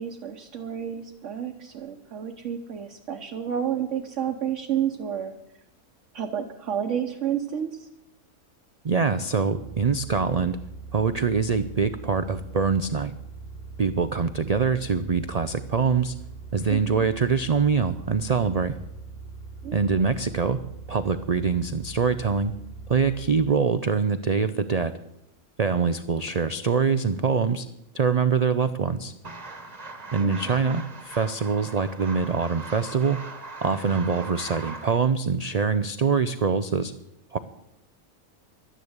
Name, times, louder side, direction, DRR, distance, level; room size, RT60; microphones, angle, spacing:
voice 1, 0.0-5.3 6.1-7.9 16.7-17.1 19.6-20.0 30.2-30.3, right 9 dB, 60° right, 2 dB, 1.3 m, -30 dB
voice 2, 8.8-10.6 10.9-13.2 13.8-16.1 16.5-18.7 19.7-20.6 20.9-22.5 22.9-24.9 25.6-27.7 27.9-29.1 30.1-33.2 33.6-36.9 37.3-37.4, right 5 dB, 90° right, 11 dB, 0.3 m, -24 dB
sound 1, 9.5-23.5, right 4 dB, 45° left, 1.5 m, -41 dB
sound 2, 29.2-35.0, right 3 dB, 30° right, 1.2 m, -40 dB
12.0 x 10.0 x 8.1 m, 0.84 s
omnidirectional pair, 1.5 m